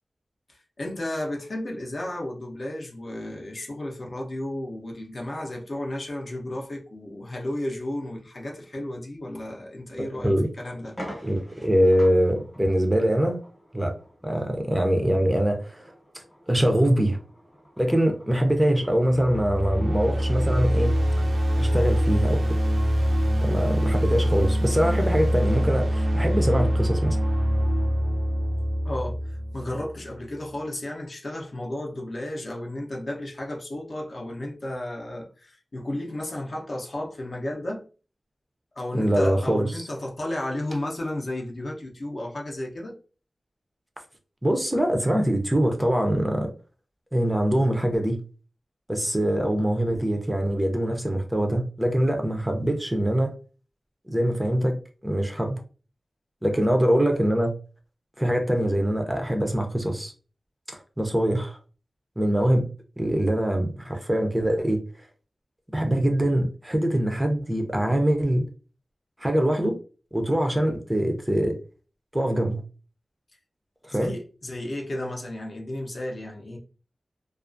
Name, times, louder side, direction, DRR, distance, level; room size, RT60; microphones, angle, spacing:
voice 1, 0.5-10.3 10.6-11.0 28.8-37.8 38.8-43.0 56.5-56.7 73.9-76.6, left 1 dB, 50° left, 0.6 m, -33 dB
sound 1, 9.9-10.0 10.4-10.5 10.9-19.5, equal, 15° left, 0.8 m, -46 dB
voice 2, 10.0-10.5 11.2-13.4 13.7-13.9 14.2-17.2 17.8-21.0 21.6-22.4 23.4-27.2 38.9-39.8 44.4-46.5 47.1-48.2 48.9-53.3 54.1-55.6 56.4-57.5 58.2-60.1 60.7-61.6 62.2-62.7 63.0-64.8 65.7-68.5 69.2-69.8 70.1-71.6 72.1-72.6 73.8-74.2, right 1 dB, 10° right, 0.4 m, -23 dB
sound 2, 19.1-30.1, equal, 65° right, 0.4 m, -24 dB
2.3 x 2.3 x 2.4 m
wide cardioid pair, 100°, 0 cm